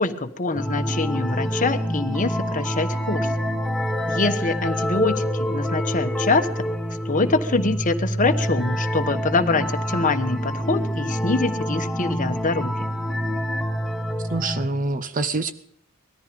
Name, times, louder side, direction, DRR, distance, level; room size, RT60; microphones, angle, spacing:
voice 1, 0.0-3.3 4.1-6.6 7.1-12.9, left 3 dB, 40° left, 7 dB, 1.2 m, -24 dB
sound 1, 0.5-14.7, equal, ahead, 1.3 m, -26 dB
voice 2, 14.3-15.5, right 3 dB, 40° right, 11 dB, 0.8 m, -25 dB
19.5 x 14.0 x 5.2 m, 0.68 s
head